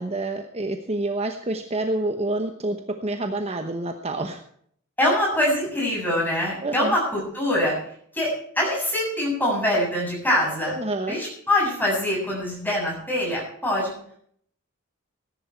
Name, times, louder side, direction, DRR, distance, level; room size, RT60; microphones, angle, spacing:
voice 1, 0.0-2.8 3.0-4.4 6.6-7.0 10.6-11.2, right 2 dB, 30° right, 6 dB, 1.0 m, -28 dB
voice 2, 5.0-7.7 8.1-10.7 11.1-13.9, left 1 dB, 10° left, -3 dB, 7.3 m, -24 dB
17.5 x 11.0 x 4.5 m, 0.63 s
head